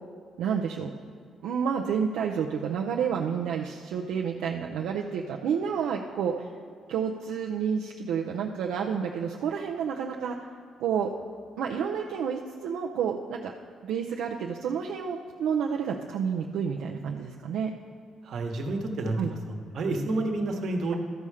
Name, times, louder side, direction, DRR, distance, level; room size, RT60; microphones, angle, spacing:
voice 1, 0.4-0.9 1.4-6.5 6.9-10.4 10.8-11.1 11.6-13.5 13.8-17.7 19.2-19.3, right 7 dB, 85° right, 0 dB, 0.5 m, -30 dB
voice 2, 18.2-19.2 19.5-20.9, right 2 dB, 65° right, 3 dB, 1.2 m, -29 dB
13.0 x 5.6 x 4.9 m, 2.2 s
cardioid pair, 90°, 0 cm